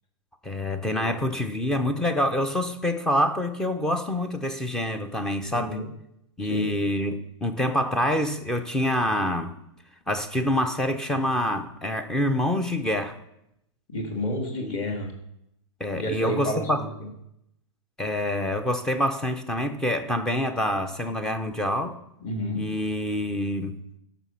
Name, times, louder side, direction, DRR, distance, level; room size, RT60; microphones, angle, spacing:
voice 1, 0.4-5.8 6.4-9.5 10.1-13.2 14.6-14.8 15.8-16.8 18.0-22.0 22.5-23.8, left 1 dB, 5° left, 8 dB, 0.5 m, -26 dB
voice 2, 5.5-5.9 6.4-6.7 13.9-15.1 15.9-16.9 22.2-22.6, left 1 dB, 30° left, 3 dB, 2.1 m, -30 dB
13.0 x 6.0 x 5.6 m, 0.81 s
hypercardioid pair, 165°, 16 cm